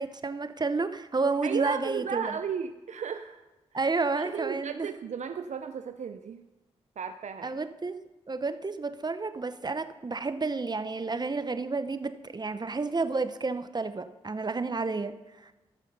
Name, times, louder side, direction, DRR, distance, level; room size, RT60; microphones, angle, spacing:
voice 1, 0.0-2.4 3.7-4.9 7.4-8.0 8.3-15.1 15.4-15.5, right 3 dB, 35° right, 11 dB, 0.9 m, -31 dB
voice 2, 1.4-3.4 3.7-3.9 4.2-6.5 7.0-7.6, right 7 dB, 65° right, 9 dB, 0.5 m, -35 dB
14.0 x 6.5 x 5.4 m, 1.1 s
supercardioid pair, 40°, 13 cm